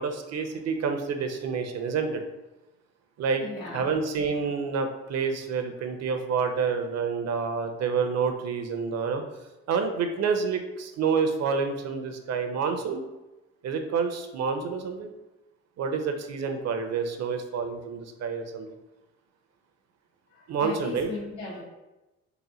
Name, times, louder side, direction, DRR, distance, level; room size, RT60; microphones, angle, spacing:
voice 1, 0.0-2.2 3.2-3.4 3.7-9.2 9.7-13.0 13.6-15.1 15.8-18.7 20.5-21.1, right 5 dB, 60° right, 6 dB, 0.6 m, -28 dB
voice 2, 3.4-3.9 20.6-21.6, left 3 dB, 85° left, -4 dB, 1.3 m, -37 dB
3.9 x 2.1 x 4.1 m, 1.0 s
cardioid pair, 90°, 30 cm